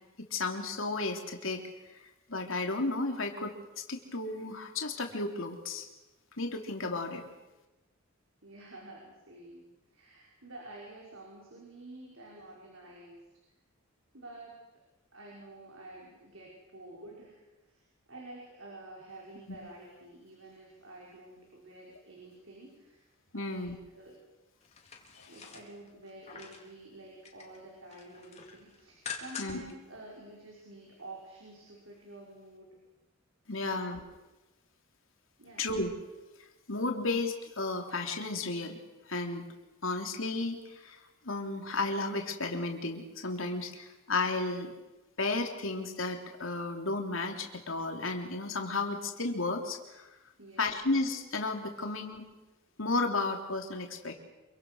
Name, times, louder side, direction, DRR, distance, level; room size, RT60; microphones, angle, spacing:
voice 1, 0.3-1.6 2.0-3.5 3.9-5.9 6.4-7.2 19.5-19.6 23.3-23.8 29.4-29.6 33.5-34.0 35.6-35.9 36.7-38.8 39.1-39.5 39.8-44.7 45.2-50.1 50.6-52.2 52.8-54.1, left 3 dB, 75° left, 3 dB, 3.2 m, -33 dB
voice 2, 8.4-13.2 14.1-14.6 15.1-23.1 23.3-23.7 23.9-24.2 25.3-32.8 33.5-34.1 35.4-35.7 50.4-50.7 51.7-51.9, right 2 dB, 75° right, -2 dB, 5.8 m, -50 dB
sound 1, 24.6-26.7 27.1-27.6 27.9-29.7 30.1-30.2, left 6 dB, 30° left, 3.8 m, -45 dB
27.0 x 24.5 x 6.4 m, 1.1 s
head